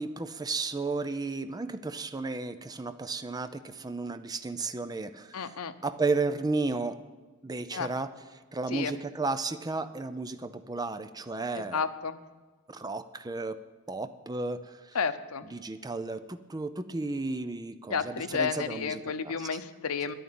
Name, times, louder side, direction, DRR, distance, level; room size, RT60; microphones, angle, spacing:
voice 1, 0.0-5.6 5.8-7.0 7.4-8.1 8.5-11.8 12.7-13.6 13.9-15.0 15.4-19.6, right 3 dB, 20° right, 11 dB, 0.5 m, -33 dB
voice 2, 5.3-5.7 7.7-7.9 8.7-8.9 11.5-12.2 14.9-15.4 17.9-20.1, left 6 dB, 80° left, 10 dB, 0.8 m, -31 dB
11.0 x 9.1 x 8.6 m, 1.3 s
head